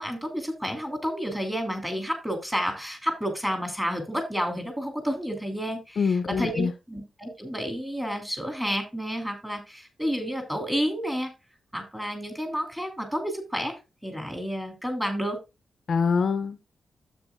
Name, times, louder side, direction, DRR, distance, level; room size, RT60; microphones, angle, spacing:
voice 1, 0.0-11.3 11.7-13.7 14.0-15.4, equal, 5° right, 2.6 m, -30 dB
voice 2, 6.0-6.7 15.9-16.6, left 5 dB, 50° left, 0.7 m, -24 dB
12.0 x 7.9 x 2.2 m
wide cardioid pair, 160°, 0 cm